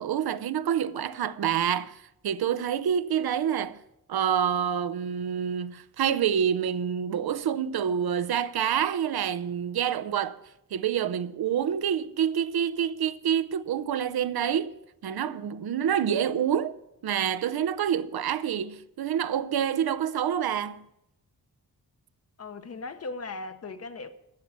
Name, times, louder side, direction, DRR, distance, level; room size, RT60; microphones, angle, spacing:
voice 1, 0.0-3.8 4.1-10.4 10.7-14.7 15.0-16.7 17.0-20.9, right 9 dB, 80° right, 0.6 m, -27 dB
voice 2, 22.4-24.1, left 3 dB, 40° left, 0.9 m, -38 dB
13.0 x 7.4 x 7.2 m
wide cardioid pair, 175°, 37 cm